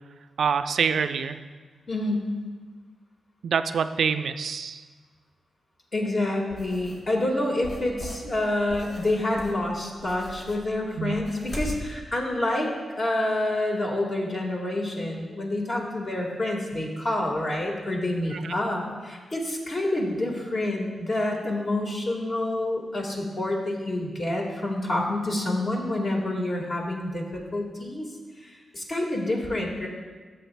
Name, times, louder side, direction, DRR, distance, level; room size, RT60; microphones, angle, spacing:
voice 1, 0.4-1.4 3.4-4.8 11.0-11.2 18.3-18.5, right 6 dB, 70° right, 10 dB, 0.3 m, -26 dB
voice 2, 1.9-2.3 5.9-28.1 28.4-29.9, left 1 dB, 40° left, -1 dB, 1.6 m, -28 dB
sound 1, 6.5-7.0 7.6-11.8, left 1 dB, 55° left, 2.4 m, -39 dB
13.0 x 7.4 x 2.2 m, 1.5 s
wide cardioid pair, 105°, 0 cm